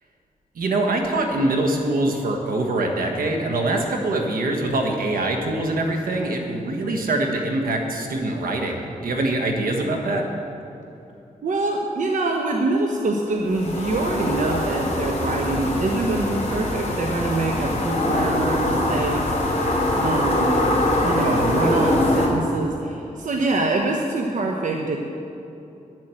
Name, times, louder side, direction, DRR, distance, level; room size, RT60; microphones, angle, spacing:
voice 1, 0.5-10.2, right 2 dB, 85° right, 2 dB, 1.5 m, -24 dB
voice 2, 11.4-20.6 21.0-25.0, right 2 dB, 65° right, 1 dB, 1.0 m, -25 dB
sound 1, 13.5-22.3, left 1 dB, 50° left, 2.9 m, -23 dB
10.5 x 7.6 x 7.7 m, 2.8 s
cardioid pair, 70°, 14 cm